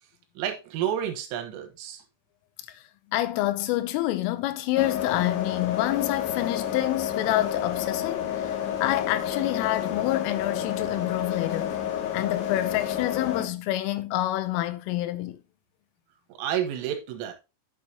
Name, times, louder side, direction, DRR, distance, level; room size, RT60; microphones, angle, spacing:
voice 1, 0.4-2.0 16.4-17.3, right 10 dB, 85° right, 3.9 m, -30 dB
voice 2, 3.1-8.3 8.8-11.8 12.1-15.4, left 15 dB, 90° left, 3.3 m, -27 dB
sound 1, 4.8-13.5, left 10 dB, 75° left, 4.0 m, -30 dB
9.1 x 7.2 x 2.9 m
omnidirectional pair, 5.7 m